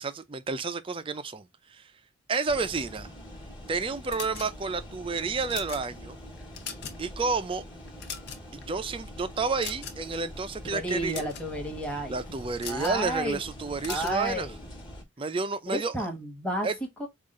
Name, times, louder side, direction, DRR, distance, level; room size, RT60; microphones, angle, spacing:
voice 1, 0.0-1.9 2.3-3.1 3.7-6.2 7.0-7.7 8.5-11.3 12.1-14.5 15.2-16.1 16.6-16.7, right 4 dB, 25° right, 0.4 m, -30 dB
sound 1, 2.5-15.0, equal, 25° left, 1.4 m, -44 dB
sound 2, 4.1-4.8 5.3-5.9 6.4-7.1 7.4-7.5 7.9-8.6 9.6-10.1 10.9-11.5 12.6-13.0 13.8-14.2, left 7 dB, 55° left, 0.9 m, -39 dB
voice 2, 10.7-12.1 12.7-13.4 13.9-14.6 15.7-16.7 17.0-17.1, equal, 5° left, 1.2 m, -31 dB
5.4 x 2.5 x 3.6 m
head